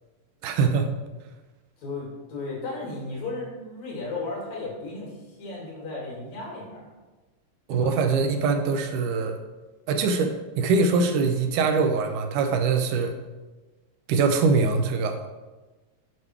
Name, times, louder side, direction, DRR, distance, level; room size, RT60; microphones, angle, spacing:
voice 1, 0.4-0.9 7.7-9.4 9.9-13.2 14.1-15.2, right 4 dB, 80° right, 6 dB, 2.2 m, -23 dB
voice 2, 1.8-6.9 7.7-8.0, left 3 dB, 65° left, -3 dB, 3.3 m, -35 dB
7.3 x 5.6 x 4.6 m, 1.2 s
omnidirectional pair, 3.6 m